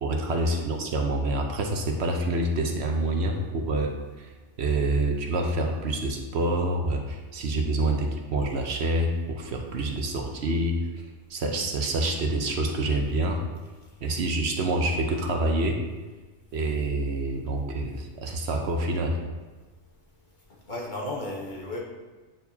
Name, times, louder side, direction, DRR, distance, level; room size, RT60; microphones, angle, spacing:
voice 1, 0.0-3.9 4.2-4.3 4.6-10.8 11.3-13.4 14.0-15.8 16.5-19.2, right 2 dB, 65° right, 2 dB, 0.9 m, -27 dB
voice 2, 20.7-21.8, left 1 dB, 45° left, -3 dB, 1.2 m, -34 dB
9.1 x 4.6 x 2.7 m, 1.3 s
omnidirectional pair, 1.2 m